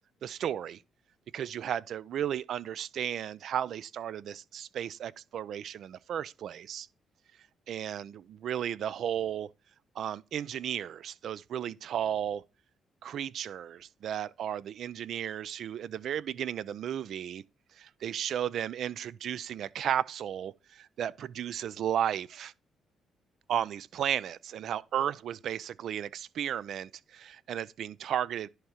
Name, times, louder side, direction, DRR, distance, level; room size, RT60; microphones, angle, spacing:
voice 1, 0.2-0.8 1.3-6.9 7.7-9.5 10.0-12.4 13.0-17.4 17.8-22.5 23.5-28.5, right 9 dB, 70° right, 0.4 m, -34 dB
11.0 x 3.7 x 4.2 m
cardioid pair, 90°, 0 cm